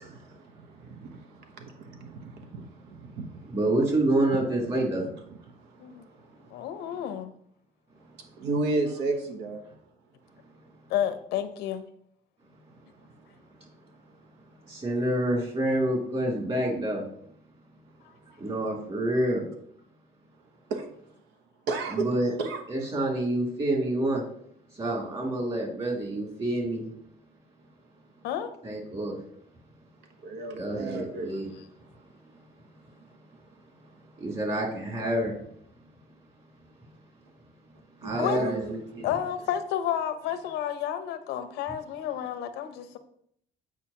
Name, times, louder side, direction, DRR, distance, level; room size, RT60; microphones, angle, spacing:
voice 1, 3.5-5.1 14.7-17.0 18.4-19.4 21.9-22.3 22.7-24.2 24.8-26.8 28.6-29.2 30.6-31.5 34.2-35.3 38.0-39.1, right 1 dB, 35° right, -1 dB, 2.7 m, -27 dB
voice 2, 6.5-7.3 10.9-11.8 18.0-18.1 28.2-28.5 38.2-38.5 39.0-43.0, left 10 dB, 90° left, 9 dB, 0.7 m, -31 dB
voice 3, 8.4-9.6 21.7-22.1 22.4-22.6 30.2-31.3 38.0-38.7, right 3 dB, 85° right, 5 dB, 0.9 m, -30 dB
8.4 x 4.8 x 2.8 m, 0.68 s
cardioid pair, 110°, 17 cm